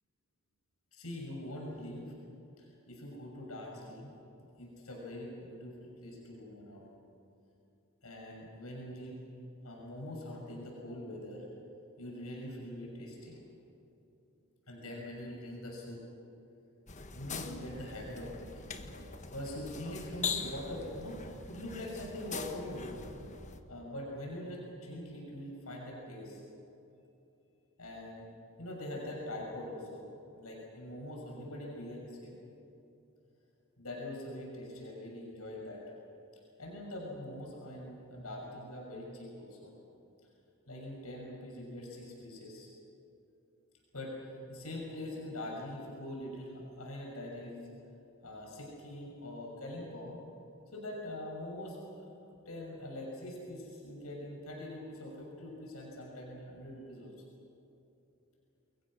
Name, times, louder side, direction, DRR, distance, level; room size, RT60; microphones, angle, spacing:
voice 1, 0.9-2.1 2.6-4.1 4.6-6.9 8.0-9.2 9.6-11.5 12.0-13.4 14.7-16.0 17.1-23.0 23.7-26.4 27.8-28.3 28.6-30.0 30.3-32.3 33.8-35.8 36.6-39.7 40.7-42.7 43.9-47.6 48.2-50.2 50.7-51.8 52.0-52.1 52.4-57.1, left 1 dB, 85° left, -2 dB, 6.5 m, -43 dB
sound 1, 16.9-23.6, left 5 dB, 35° left, 1.4 m, -42 dB
29.0 x 22.5 x 6.4 m, 2.9 s
head